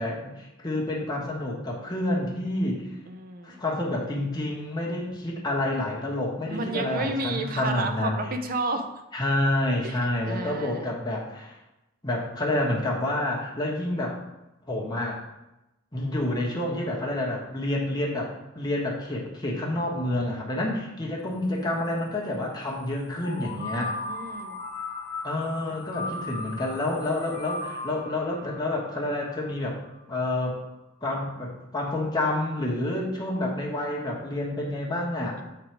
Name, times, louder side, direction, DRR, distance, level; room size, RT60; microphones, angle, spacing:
voice 1, 0.0-2.8 3.4-8.2 9.1-11.6 12.0-14.2 14.7-15.2 15.9-23.9 25.2-29.8 30.1-30.6 31.0-35.4, left 1 dB, 20° left, -3 dB, 1.2 m, -28 dB
voice 2, 3.1-3.6 6.5-9.0 9.8-9.9 10.2-10.9 23.7-24.6 25.7-25.8, right 2 dB, 40° right, 6 dB, 0.6 m, -32 dB
sound 1, 23.2-30.0, left 2 dB, 40° left, 0.9 m, -37 dB
7.4 x 3.9 x 4.6 m, 0.96 s
head